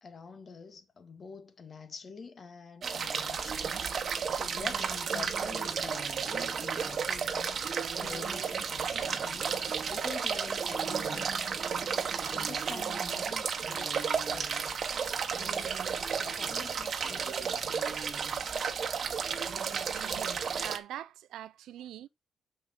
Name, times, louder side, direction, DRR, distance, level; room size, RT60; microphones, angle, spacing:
voice 1, 0.0-7.6 8.0-11.6 12.3-15.8 16.2-18.1, left 5 dB, 40° left, 2.0 m, -47 dB
sound 1, 2.8-20.8, right 6 dB, 50° right, 1.2 m, -33 dB
voice 2, 19.9-22.1, right 12 dB, 80° right, 0.6 m, -43 dB
6.3 x 5.2 x 6.6 m
cardioid pair, 90°, 0 cm